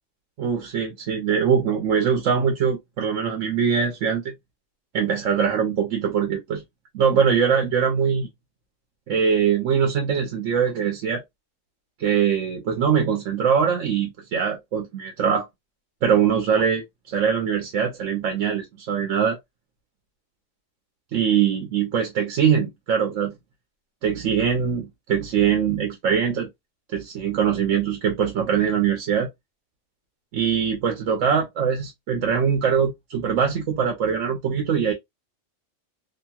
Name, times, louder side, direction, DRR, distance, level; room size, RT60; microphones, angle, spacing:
voice 1, 0.4-4.3 4.9-6.6 6.9-8.3 9.1-11.2 12.0-15.4 16.0-16.8 17.1-19.4 21.1-23.3 24.0-26.5 26.9-29.3 30.3-34.9, right 7 dB, 90° right, 1.0 m, -22 dB
2.9 x 2.6 x 2.2 m
omnidirectional pair, 1.3 m